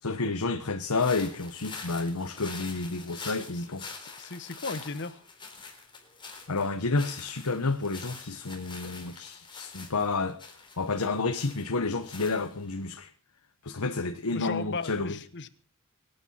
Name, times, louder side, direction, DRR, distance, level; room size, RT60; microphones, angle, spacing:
voice 1, 0.0-4.0 6.5-10.4 10.8-13.1 13.6-15.2, left 3 dB, 85° left, 1.1 m, -30 dB
sound 1, 0.9-12.8, left 4 dB, 20° left, 3.7 m, -45 dB
voice 2, 4.0-5.2 14.3-15.5, left 3 dB, 55° left, 1.2 m, -36 dB
24.5 x 9.2 x 5.7 m
head